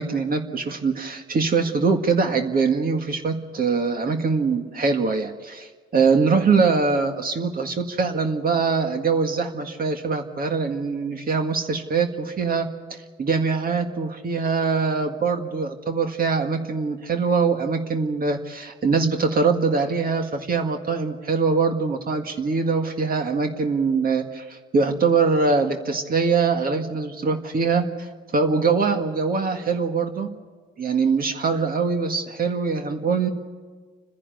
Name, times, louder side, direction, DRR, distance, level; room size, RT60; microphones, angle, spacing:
voice 1, 0.0-12.7 13.2-30.3 30.8-33.3, right 4 dB, 45° right, 4 dB, 1.9 m, -23 dB
29.5 x 10.5 x 9.3 m, 1.5 s
cardioid pair, 90°, 20 cm